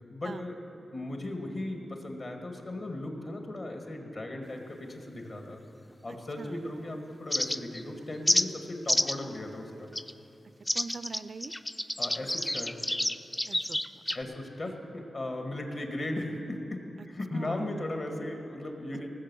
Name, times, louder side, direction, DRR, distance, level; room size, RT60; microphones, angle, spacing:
voice 1, 0.1-0.6 0.9-5.6 6.0-9.9 12.0-12.8 14.1-19.1, left 1 dB, 55° left, 3 dB, 2.0 m, -37 dB
sound 1, 7.3-7.8 8.3-8.5 8.9-9.2 9.9-10.1 10.7-14.2, left 1 dB, 15° left, 0.4 m, -28 dB
voice 2, 10.7-11.5 13.5-13.8 17.0-17.1 17.3-17.9, right 4 dB, 60° right, 14 dB, 0.4 m, -42 dB
18.5 x 7.4 x 6.3 m, 2.9 s
cardioid pair, 55°, 0 cm